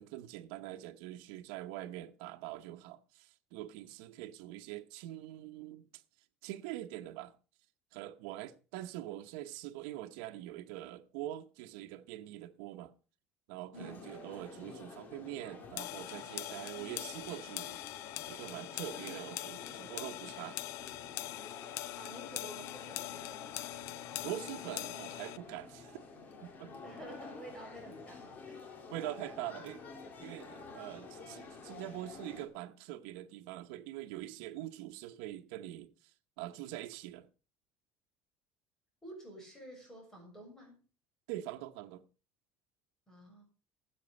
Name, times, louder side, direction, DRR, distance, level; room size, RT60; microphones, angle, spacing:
voice 1, 0.0-5.9 6.4-7.3 7.9-12.9 13.5-20.6 24.2-26.0 26.4-26.7 28.9-29.8 30.2-35.9 36.4-37.3 41.3-42.0, right 14 dB, 90° right, 1.0 m, -44 dB
sound 1, 13.7-32.5, left 4 dB, 35° left, 2.3 m, -50 dB
voice 2, 13.7-14.1 22.0-23.4 26.8-28.7 30.9-31.0 39.0-40.8 43.1-43.4, right 1 dB, 10° left, 6.4 m, -50 dB
sound 2, 15.8-25.4, left 16 dB, 60° left, 0.5 m, -43 dB
13.0 x 8.1 x 5.4 m
cardioid pair, 160°, 5 cm